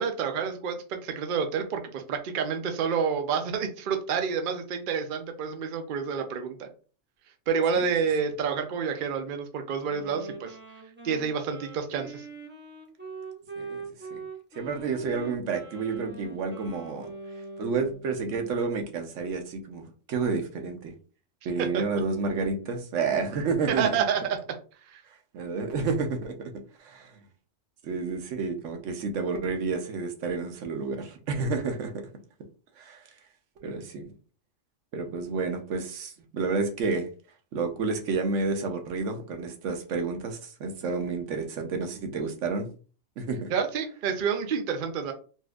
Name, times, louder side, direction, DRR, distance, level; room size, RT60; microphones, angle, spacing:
voice 1, 0.0-6.7 7.5-10.6 11.0-12.3 21.6-21.8 23.8-24.4 24.9-25.0 43.5-45.1, right 6 dB, 55° right, 0.6 m, -29 dB
Wind instrument woodwind instrument, 9.8-18.1, right 3 dB, 10° right, 0.6 m, -43 dB
voice 2, 14.5-17.1 17.6-20.9 21.4-24.0 25.3-26.5 26.8-27.1 27.8-31.9 32.8-33.0 33.6-34.1 34.9-37.1 37.5-42.7 43.2-43.5, right 4 dB, 70° right, 1.0 m, -30 dB
4.2 x 2.4 x 2.3 m
omnidirectional pair, 1.3 m